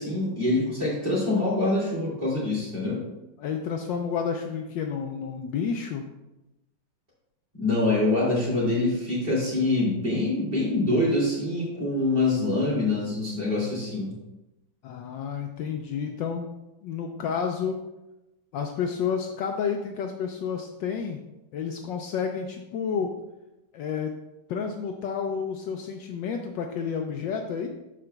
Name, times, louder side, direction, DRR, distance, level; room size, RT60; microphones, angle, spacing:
voice 1, 0.0-3.0 7.5-14.1, left 2 dB, 25° right, -6 dB, 2.5 m, -25 dB
voice 2, 3.4-6.0 14.8-16.5 16.8-17.8 18.5-21.2 21.5-23.2 23.7-24.2 24.5-27.7, left 6 dB, 75° left, 3 dB, 1.2 m, -30 dB
12.5 x 4.8 x 2.3 m, 0.97 s
omnidirectional pair, 2.3 m